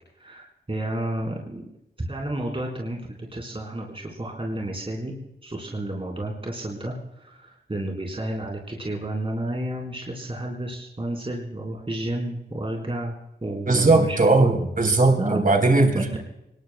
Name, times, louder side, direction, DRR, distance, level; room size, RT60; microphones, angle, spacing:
voice 1, 0.2-1.6 2.0-13.1 13.4-14.5 15.2-15.4 15.9-16.2, right 1 dB, 35° right, -1 dB, 4.2 m, -31 dB
voice 2, 13.7-16.2, right 2 dB, 55° right, 4 dB, 3.8 m, -19 dB
26.0 x 21.5 x 2.2 m, 0.86 s
wide cardioid pair, 70°, 17 cm